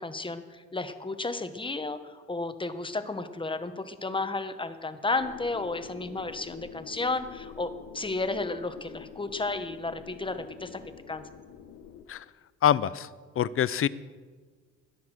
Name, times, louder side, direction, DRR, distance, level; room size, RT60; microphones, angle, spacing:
voice 1, 0.0-10.8 11.1-11.3, left 3 dB, 15° left, 10 dB, 1.1 m, -33 dB
sound 1, 5.2-12.0, left 8 dB, 85° left, 1.1 m, -46 dB
voice 2, 12.6-13.1 13.4-13.9, left 10 dB, 45° left, 18 dB, 0.5 m, -24 dB
21.0 x 7.1 x 6.3 m, 1.5 s
cardioid pair, 90°, 30 cm